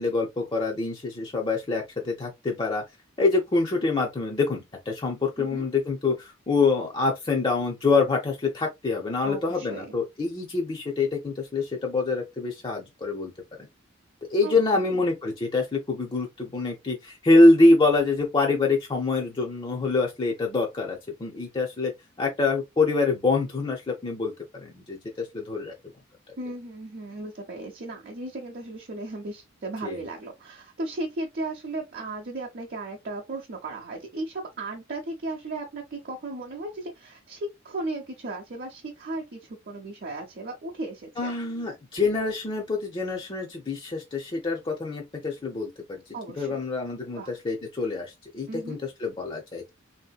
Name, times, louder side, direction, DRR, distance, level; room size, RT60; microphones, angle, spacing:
voice 1, 0.0-2.8 3.2-13.3 13.6-13.7 14.3-21.9 22.2-25.7 29.8-30.0 41.2-46.0 46.4-49.7, left 3 dB, 25° left, 0.5 m, -25 dB
voice 2, 9.2-10.0 14.4-15.0 26.4-41.3 46.1-46.6 47.2-47.3 48.5-48.8, right 2 dB, 50° right, 0.7 m, -36 dB
3.5 x 2.7 x 2.3 m
head